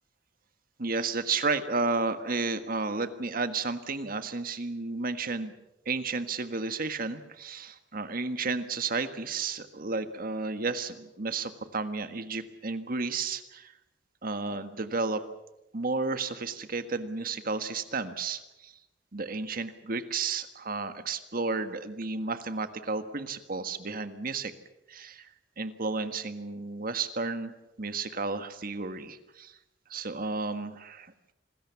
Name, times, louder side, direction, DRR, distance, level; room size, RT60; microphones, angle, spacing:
voice 1, 0.8-5.5 5.8-13.7 14.2-15.2 15.7-18.7 19.1-24.5 24.9-25.3 25.6-27.5 27.8-29.6 29.9-31.3, right 4 dB, 50° right, 9 dB, 1.6 m, -32 dB
27.5 x 20.5 x 7.1 m, 0.91 s
head